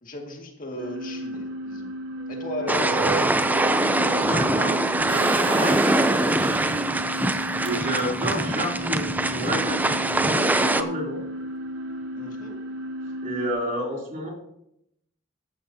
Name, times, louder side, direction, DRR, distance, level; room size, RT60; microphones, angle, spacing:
voice 1, 0.0-1.9 2.3-3.0 12.2-12.6, left 1 dB, 45° left, 2 dB, 2.1 m, -35 dB
sound 1, 0.8-13.5, right 1 dB, 75° right, 1.0 m, -34 dB
sound 2, 2.7-10.8, right 2 dB, 10° right, 0.4 m, -23 dB
voice 2, 4.0-6.3 7.3-9.0 9.3-11.2 13.0-14.3, right 1 dB, 45° right, -2 dB, 3.2 m, -31 dB
Engine, 5.1-8.5 9.0-9.1 9.3-9.4, right 4 dB, 30° right, 0.8 m, -37 dB
14.5 x 12.0 x 2.8 m, 0.80 s
head